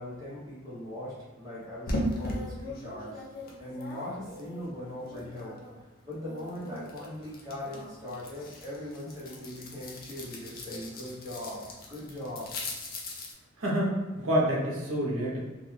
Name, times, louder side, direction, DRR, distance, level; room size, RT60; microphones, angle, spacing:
voice 1, 0.0-3.2 3.6-5.5 6.1-11.6 11.9-12.5, left 1 dB, 20° right, -8 dB, 0.8 m, -40 dB
sound 1, 1.9-5.8 6.1-13.3, left 1 dB, 45° left, 0.5 m, -39 dB
voice 2, 13.6-15.4, equal, 80° right, -3 dB, 0.7 m, -28 dB
2.3 x 2.2 x 3.1 m, 1.2 s
head